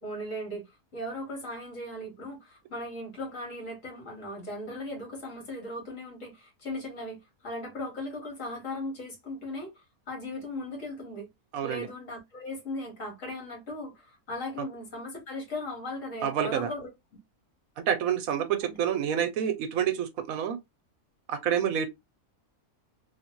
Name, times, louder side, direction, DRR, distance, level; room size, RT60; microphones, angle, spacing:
voice 1, 0.0-11.3 11.6-16.9 18.6-18.8, left 1 dB, 60° left, 1.9 m, -38 dB
voice 2, 11.5-11.9 16.2-16.7 17.9-20.6 21.3-21.9, right 9 dB, 75° right, 1.0 m, -28 dB
3.1 x 2.6 x 2.8 m
omnidirectional pair, 1.5 m